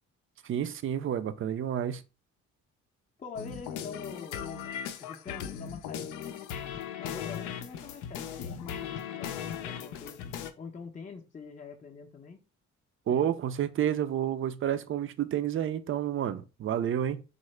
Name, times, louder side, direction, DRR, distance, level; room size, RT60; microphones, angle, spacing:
voice 1, 0.4-2.0 13.1-17.2, right 10 dB, 45° right, 0.4 m, -30 dB
voice 2, 3.2-6.4 7.0-12.4 13.1-13.3, left 5 dB, 25° left, 0.5 m, -45 dB
sound 1, 3.4-10.5, left 9 dB, 85° left, 0.5 m, -38 dB
3.7 x 2.1 x 3.1 m
cardioid pair, 90°, 30 cm